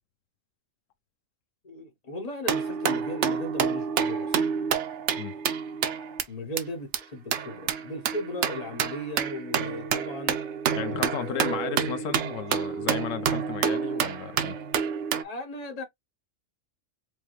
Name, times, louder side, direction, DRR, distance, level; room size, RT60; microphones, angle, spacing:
voice 1, 1.6-4.4 6.3-10.4 11.2-12.2 12.7-12.9 15.2-15.8, equal, 35° left, 1.1 m, -36 dB
sound 1, 2.5-6.2 6.6-6.7 6.9-7.0 7.3-15.2, right 7 dB, 70° right, 0.9 m, -28 dB
voice 2, 10.8-14.6, left 9 dB, 85° left, 1.0 m, -34 dB
4.7 x 2.2 x 3.0 m
omnidirectional pair, 1.3 m